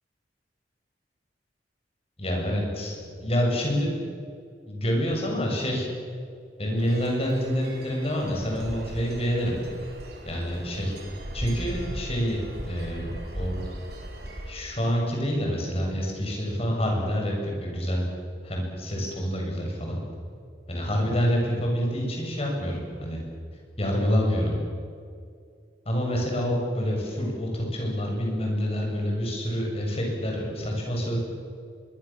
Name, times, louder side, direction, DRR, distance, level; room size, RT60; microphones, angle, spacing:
voice 1, 2.2-2.9 3.2-4.0 4.7-5.9 6.6-9.6 10.2-10.9 11.3-13.6 14.5-18.1 18.4-20.0 20.7-23.2 23.8-24.6 25.9-31.2, equal, 35° left, 0 dB, 7.6 m, -27 dB
sound 1, 6.8-14.5, right 1 dB, 60° right, 6.1 m, -38 dB
25.0 x 23.0 x 7.5 m, 2.3 s
head